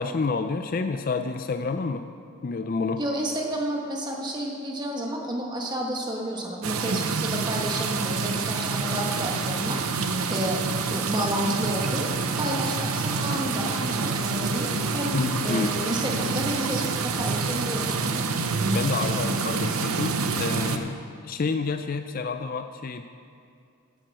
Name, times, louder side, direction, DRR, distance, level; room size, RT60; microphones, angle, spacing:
voice 1, 0.0-2.1 2.4-3.0 15.1-15.7 18.7-21.0 21.2-23.0, left 4 dB, 40° left, 8 dB, 0.4 m, -28 dB
voice 2, 3.0-10.6 10.9-12.1 12.3-18.3, right 1 dB, 20° right, -1 dB, 1.4 m, -31 dB
sound 1, 6.6-20.8, right 4 dB, 85° right, 0.8 m, -27 dB
10.5 x 7.7 x 7.7 m, 2.4 s
head